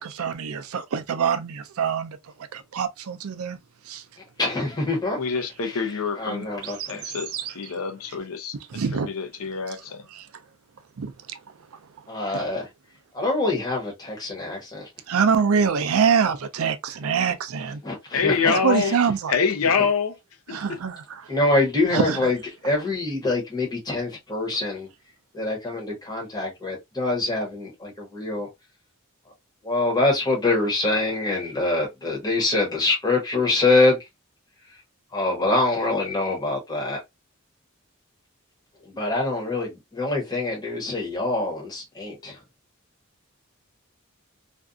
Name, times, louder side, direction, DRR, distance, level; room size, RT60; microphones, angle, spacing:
voice 1, 0.0-2.2 2.5-3.6 3.9-4.0 6.6-6.9 7.3-7.5 8.7-9.1 10.1-10.3 11.0-11.1 11.7-11.8 12.3-12.4 15.1-17.8 18.6-19.3 20.5-21.2 21.9-22.2, right 6 dB, 90° right, 0.5 m, -24 dB
voice 2, 4.4-5.2 5.6-7.0 12.1-12.7 13.1-14.9 17.8-18.9 19.8-19.9 21.3-24.9 25.3-28.5 29.6-34.0 34.7-34.8 35.1-37.0 38.8-42.4, left 2 dB, 20° left, 1.0 m, -25 dB
voice 3, 5.2-6.5 6.9-10.1 18.1-19.0 19.3-20.1 20.5-20.8, left 5 dB, 85° left, 0.6 m, -26 dB
2.6 x 2.3 x 2.3 m
head